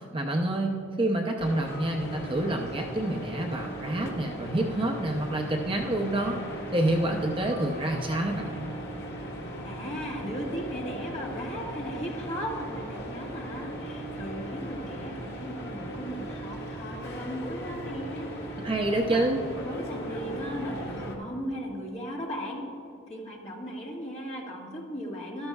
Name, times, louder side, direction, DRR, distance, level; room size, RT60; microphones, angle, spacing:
voice 1, 0.0-6.4 6.7-8.7 18.6-19.4, right 1 dB, 25° right, 1 dB, 0.6 m, -28 dB
sound 1, 1.4-21.2, right 1 dB, 50° left, 1.7 m, -38 dB
voice 2, 9.6-18.3 19.1-19.3 19.6-22.6 23.1-25.5, equal, 30° left, -3 dB, 1.7 m, -37 dB
13.0 x 13.0 x 2.3 m, 2.5 s
head